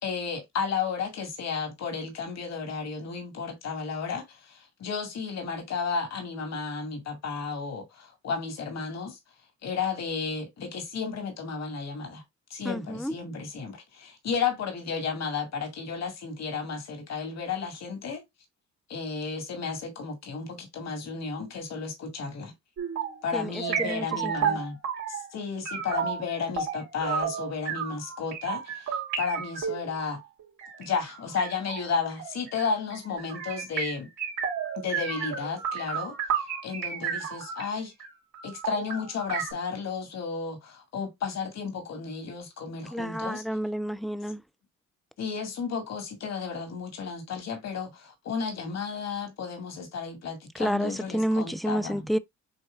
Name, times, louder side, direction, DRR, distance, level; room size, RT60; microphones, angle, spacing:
voice 1, 0.0-9.2 9.6-12.2 12.5-18.2 18.9-22.5 23.2-24.8 25.1-30.2 30.8-34.1 34.7-37.9 38.4-43.4 45.2-52.1, left 5 dB, 60° left, 2.1 m, -33 dB
voice 2, 12.6-13.1 23.3-24.6 42.9-44.4 50.6-52.2, equal, ahead, 0.4 m, -30 dB
sound 1, 22.8-23.2 23.6-25.3 25.6-37.7 38.0-38.1 38.3-39.5, right 7 dB, 75° right, 2.4 m, -32 dB
7.8 x 2.8 x 2.4 m
cardioid pair, 90°, 30 cm